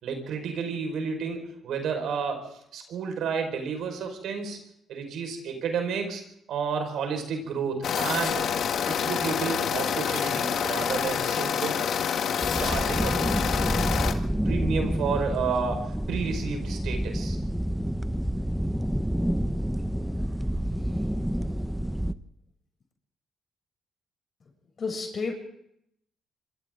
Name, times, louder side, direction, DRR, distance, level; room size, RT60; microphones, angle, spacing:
voice 1, 0.0-4.6 4.9-6.2 6.5-8.4 8.8-11.8 12.5-13.2 14.4-17.4, right 5 dB, 75° right, 5 dB, 5.3 m, -31 dB
sound 1, 7.8-14.1, left 7 dB, 65° left, 1.7 m, -27 dB
sound 2, 12.4-22.1, equal, 5° right, 0.9 m, -28 dB
voice 2, 20.8-21.4 24.8-25.3, left 4 dB, 45° left, 2 dB, 7.8 m, -34 dB
27.0 x 24.5 x 3.9 m, 0.75 s
cardioid pair, 90°, 0 cm